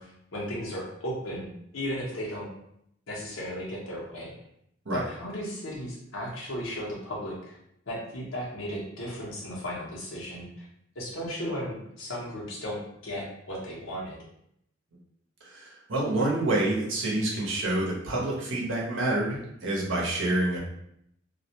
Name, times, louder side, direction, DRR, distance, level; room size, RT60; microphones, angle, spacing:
voice 1, 0.0-1.5 1.7-2.5 3.1-4.3 4.9-7.6 7.9-10.7 10.9-14.2, equal, 90° left, -4 dB, 0.8 m, -35 dB
voice 2, 15.4-20.6, right 2 dB, 80° right, -4 dB, 0.8 m, -27 dB
2.3 x 2.1 x 2.8 m, 0.75 s
head